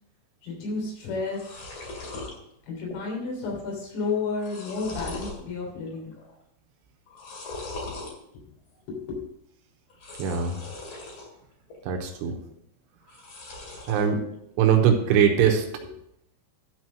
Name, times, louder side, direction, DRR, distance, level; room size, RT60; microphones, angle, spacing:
voice 1, 0.4-1.6 2.7-6.1 8.9-9.2, left 4 dB, 90° left, -2 dB, 6.0 m, -31 dB
sound 1, 0.8-0.9 1.1-2.3 2.8-3.2 3.5-3.6 4.1-5.4 5.9-6.3 7.1-8.1 9.9-11.3 11.7-12.3 13.0-14.1, left 2 dB, 50° left, 2.7 m, -40 dB
voice 2, 10.2-10.6 11.9-12.4 13.9-14.2 14.6-15.6, right 8 dB, 80° right, 4 dB, 3.4 m, -21 dB
12.5 x 4.6 x 6.1 m, 0.78 s
omnidirectional pair, 5.9 m